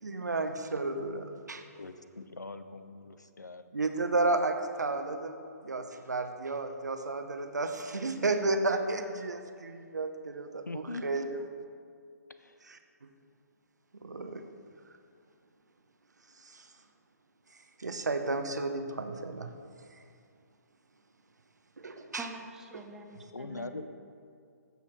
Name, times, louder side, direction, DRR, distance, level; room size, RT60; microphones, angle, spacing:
voice 1, 0.0-1.6 3.7-5.3 5.6-11.4 12.7-12.8 13.9-14.4 16.5-16.6 17.8-19.5 21.8-22.3 22.7-22.8, right 2 dB, 80° right, 7 dB, 0.7 m, -32 dB
voice 2, 1.8-3.7 10.7-11.3 12.3-12.6 23.3-23.9, left 3 dB, 90° left, 11 dB, 0.5 m, -42 dB
voice 3, 22.2-23.9, right 2 dB, 5° right, 3 dB, 0.5 m, -45 dB
15.0 x 5.6 x 3.2 m, 2.3 s
figure-of-eight pair, 135°, 9 cm